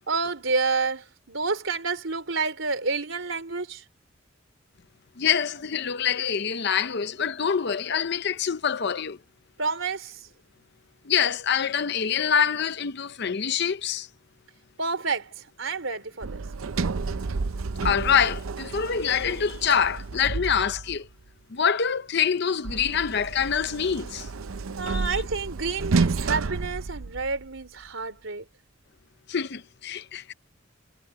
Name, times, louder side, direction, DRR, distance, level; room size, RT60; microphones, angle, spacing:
voice 1, 0.1-3.8 9.6-10.3 14.8-16.3 24.8-28.5, right 4 dB, 70° right, 3.7 m, -29 dB
voice 2, 5.2-9.2 11.1-14.1 17.8-21.1 21.5-24.3 24.8-25.2 29.3-30.3, left 7 dB, 55° left, 0.6 m, -25 dB
Sliding door, 16.2-21.1 22.6-27.6, right 4 dB, 90° right, 0.6 m, -30 dB
head